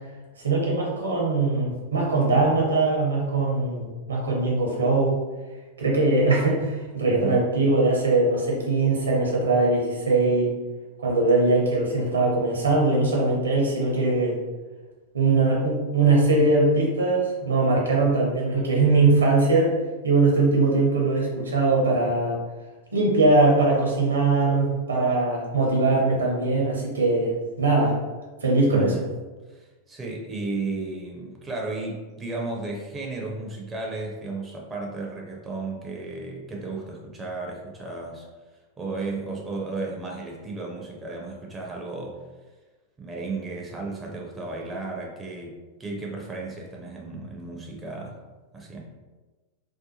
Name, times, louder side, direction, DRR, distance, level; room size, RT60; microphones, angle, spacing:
voice 1, 0.4-5.2 5.8-10.5 11.0-14.4 15.1-19.7 20.0-22.4 22.9-27.3 27.6-28.0 28.4-28.9, right 3 dB, 75° right, -2 dB, 0.7 m, -21 dB
voice 2, 7.0-7.5 28.7-29.1 29.5-38.3 38.8-42.2 43.0-48.2 48.5-48.8, right 3 dB, 15° right, -1 dB, 0.5 m, -34 dB
2.6 x 2.2 x 2.7 m, 1.2 s
figure-of-eight pair, 90°, 0 cm